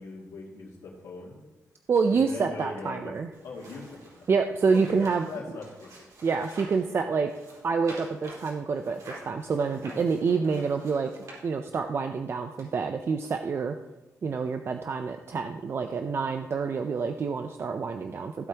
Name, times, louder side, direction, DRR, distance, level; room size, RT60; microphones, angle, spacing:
voice 1, 0.0-1.4 2.1-3.1 3.4-4.3 4.7-6.1 9.6-10.0, left 3 dB, 85° left, -8 dB, 2.4 m, -41 dB
voice 2, 1.9-3.3 4.3-5.3 6.2-7.3 7.6-11.1 11.4-13.7 14.2-18.5, right 5 dB, 40° right, 6 dB, 0.5 m, -27 dB
sound 1, 3.3-6.9 7.2-11.9 12.6-12.7, right 1 dB, 70° right, 4.1 m, -48 dB
16.0 x 8.1 x 2.9 m, 1.1 s
cardioid pair, 130°, 6 cm